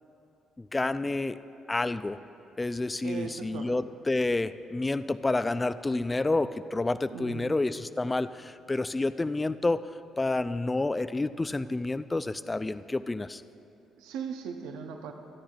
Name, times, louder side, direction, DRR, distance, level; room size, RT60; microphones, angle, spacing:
voice 1, 0.6-1.4 1.7-2.2 2.6-9.9 10.2-13.4, left 2 dB, 20° left, 13 dB, 0.3 m, -29 dB
voice 2, 3.0-3.8 7.1-7.6 14.0-15.1, right 7 dB, 85° right, 4 dB, 0.7 m, -38 dB
24.5 x 9.9 x 2.4 m, 2.9 s
supercardioid pair, 65°, 0 cm